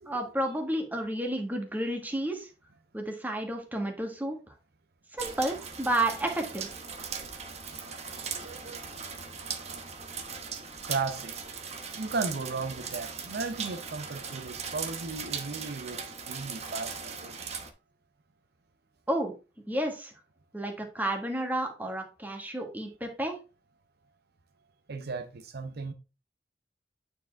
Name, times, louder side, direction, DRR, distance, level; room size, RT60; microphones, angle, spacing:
voice 1, 0.1-2.5 2.9-4.4 5.1-6.7 19.1-19.3 19.7-20.1 20.5-23.4, right 1 dB, 10° right, 1.6 m, -31 dB
sound 1, 5.2-17.7, right 6 dB, 40° right, 0.9 m, -39 dB
voice 2, 8.3-8.9 10.8-11.6 11.9-17.6 24.9-25.9, right 4 dB, 60° right, 0.7 m, -36 dB
8.9 x 4.7 x 3.4 m
head